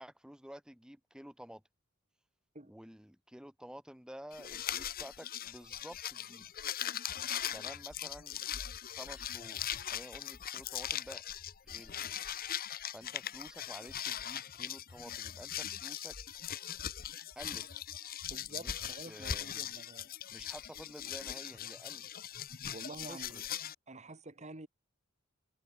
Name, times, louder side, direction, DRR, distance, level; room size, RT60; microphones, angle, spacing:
voice 1, 0.0-1.6 2.7-6.5 7.5-8.5 8.8-11.2 11.6-12.0 12.9-16.2 17.4-17.7 18.5-19.7 20.3-22.1 23.1-23.4, equal, 5° right, 1.8 m, -51 dB
sound 1, 4.3-23.7, left 10 dB, 45° left, 1.0 m, -40 dB
voice 2, 18.2-20.1 22.7-23.4 23.9-24.7, right 2 dB, 35° right, 2.4 m, -48 dB
head